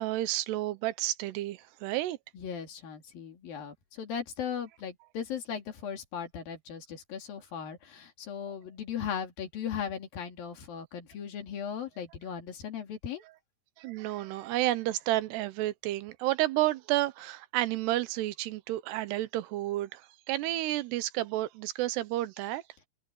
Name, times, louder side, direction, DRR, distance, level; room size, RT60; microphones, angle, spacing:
voice 1, 0.0-2.2 13.8-20.0 20.3-22.6, right 16 dB, 85° right, 2.9 m, -31 dB
voice 2, 2.3-13.2, left 7 dB, 60° left, 4.2 m, -37 dB
omnidirectional pair, 4.8 m